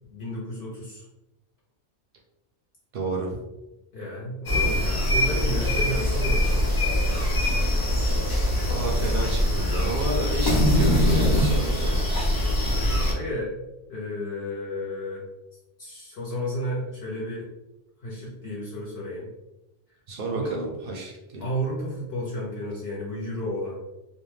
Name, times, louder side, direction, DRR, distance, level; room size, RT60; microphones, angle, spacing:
voice 1, 0.1-1.0 3.9-6.4 7.4-7.6 13.1-13.6 13.9-15.3 15.8-17.5 18.0-19.3 20.3-20.5 21.4-23.8, equal, 60° left, -6 dB, 0.9 m, -32 dB
voice 2, 2.9-3.4 8.7-12.0 20.1-21.5, right 2 dB, 60° right, 0 dB, 0.6 m, -31 dB
sound 1, 4.5-13.1, left 1 dB, 35° left, 0.3 m, -23 dB
2.6 x 2.1 x 3.1 m, 0.97 s
omnidirectional pair, 1.2 m